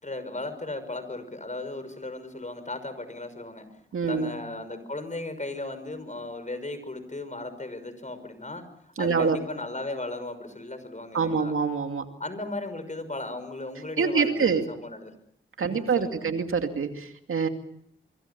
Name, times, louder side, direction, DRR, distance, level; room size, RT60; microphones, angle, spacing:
voice 1, 0.0-3.7 4.1-11.6 12.2-15.1 15.6-16.3, left 2 dB, 35° left, 11 dB, 5.9 m, -36 dB
voice 2, 3.9-4.3 9.0-9.4 11.1-12.0 14.0-14.6 15.6-17.5, right 5 dB, 80° right, 6 dB, 2.5 m, -25 dB
25.0 x 24.0 x 7.0 m, 0.71 s
cardioid pair, 40°, 21 cm